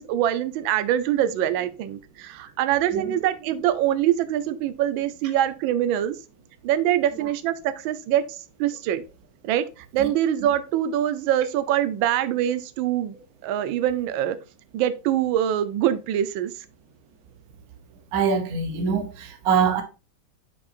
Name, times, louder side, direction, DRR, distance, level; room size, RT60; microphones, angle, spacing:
voice 1, 0.0-6.1 6.6-9.0 9.4-9.7 9.9-13.1 13.4-14.4 14.7-16.5, right 11 dB, 75° right, 1.3 m, -24 dB
voice 2, 18.1-19.8, right 6 dB, 60° right, 1.0 m, -24 dB
8.1 x 5.4 x 2.5 m
omnidirectional pair, 2.3 m